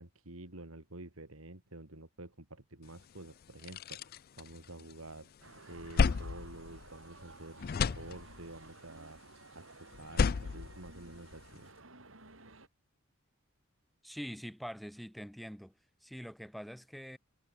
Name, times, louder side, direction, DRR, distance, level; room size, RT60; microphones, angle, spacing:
voice 1, 0.0-5.3 5.7-9.2 9.6-11.7, right 2 dB, 90° right, 3.6 m, -49 dB
sound 1, 3.0-3.1 3.4-5.1 5.5-7.3 7.6-8.6 9.9-11.6, left 5 dB, 45° left, 0.4 m, -33 dB
sound 2, 5.4-12.7, right 3 dB, 70° right, 6.6 m, -55 dB
voice 2, 14.0-15.7 16.0-17.2, equal, ahead, 7.2 m, -44 dB
head